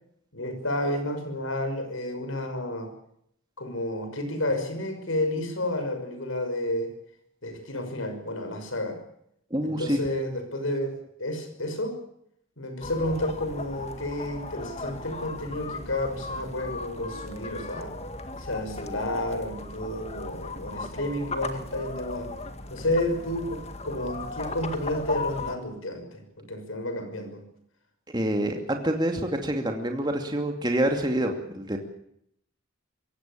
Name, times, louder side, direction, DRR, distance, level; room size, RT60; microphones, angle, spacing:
voice 1, 0.3-2.9 3.6-6.9 7.4-9.0 9.6-12.0 12.6-18.0 18.4-22.3 22.7-27.4, left 1 dB, 70° left, 7 dB, 5.9 m, -31 dB
voice 2, 9.5-10.0 28.1-31.8, right 1 dB, 20° right, 4 dB, 2.6 m, -27 dB
sound 1, 12.8-25.5, left 3 dB, 30° left, 1.9 m, -37 dB
26.0 x 16.5 x 8.8 m, 0.73 s
head